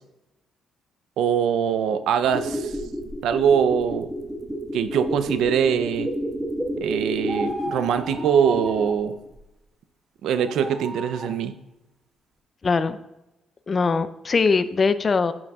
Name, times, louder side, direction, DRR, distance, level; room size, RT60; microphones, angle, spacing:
voice 1, 1.2-2.8 3.2-4.1 4.7-6.1 6.8-9.2 10.2-11.5, right 7 dB, 80° right, 11 dB, 0.5 m, -22 dB
sound 1, 2.2-9.0 9.3-9.4, equal, 15° right, 1.4 m, -30 dB
sound 2, 7.2-9.0 10.3-11.4, right 2 dB, 55° right, 1.6 m, -35 dB
voice 2, 12.6-13.0 13.7-15.3, left 4 dB, 35° left, 13 dB, 0.4 m, -21 dB
9.6 x 7.4 x 2.3 m, 0.95 s
cardioid pair, 90°, 0 cm